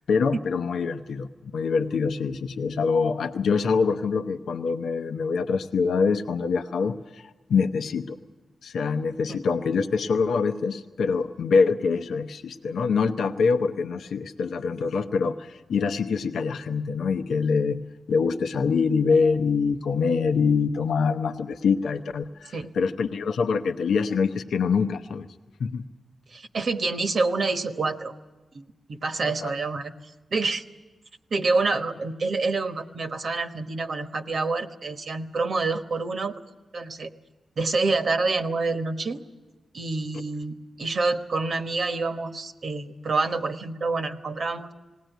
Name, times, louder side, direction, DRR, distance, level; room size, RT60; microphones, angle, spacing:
voice 1, 0.1-8.2 8.6-17.8 18.1-25.3 25.6-25.8 29.2-29.5, left 5 dB, 90° left, 6 dB, 0.7 m, -25 dB
voice 2, 26.3-28.1 28.5-29.9 30.3-30.6 31.3-36.4 36.7-37.1 37.6-39.2 39.7-44.7, right 3 dB, 65° right, 7 dB, 1.2 m, -27 dB
19.5 x 17.5 x 9.2 m, 1.2 s
cardioid pair, 60°, 0 cm